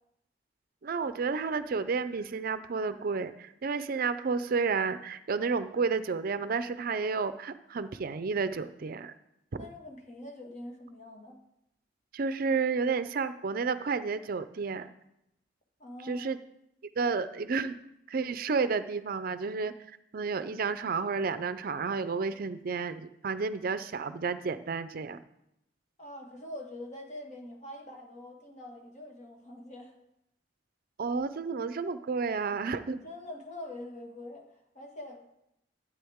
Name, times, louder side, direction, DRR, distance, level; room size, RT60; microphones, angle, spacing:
voice 1, 0.8-9.1 12.1-14.9 16.1-16.4 17.0-17.8 18.1-19.7 20.1-25.2 31.0-33.0, right 4 dB, 55° right, 12 dB, 0.5 m, -31 dB
voice 2, 9.5-11.4 15.8-16.3 26.0-29.9 33.0-35.2, left 1 dB, 40° left, 1 dB, 1.8 m, -44 dB
12.5 x 8.6 x 3.6 m, 0.82 s
head